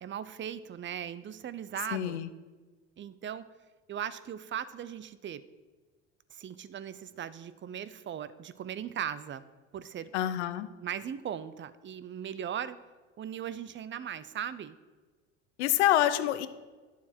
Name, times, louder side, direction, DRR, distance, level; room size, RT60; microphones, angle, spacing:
voice 1, 0.0-2.2 3.0-3.5 3.9-5.4 6.3-9.4 9.7-10.1 10.8-12.8 13.2-14.8, right 9 dB, 35° right, 15 dB, 0.7 m, -38 dB
voice 2, 1.9-2.3 10.1-10.7 15.6-16.5, left 12 dB, 85° left, 12 dB, 0.7 m, -26 dB
11.5 x 7.1 x 4.5 m, 1.3 s
hypercardioid pair, 75°, 34 cm